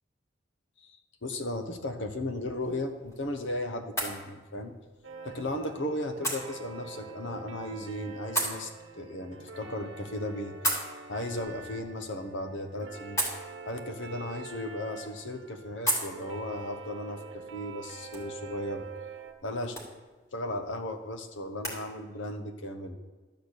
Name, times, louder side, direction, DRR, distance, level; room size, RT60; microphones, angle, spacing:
voice 1, 0.8-4.8 5.2-10.6 11.1-13.3 13.7-18.9 19.4-19.8 20.3-23.0, left 1 dB, 70° left, 6 dB, 1.1 m, -36 dB
sound 1, 2.3-21.8, right 1 dB, 15° left, 2.4 m, -39 dB
sound 2, 5.0-19.3, right 5 dB, 65° right, 0.9 m, -45 dB
12.0 x 4.4 x 8.1 m, 1.3 s
head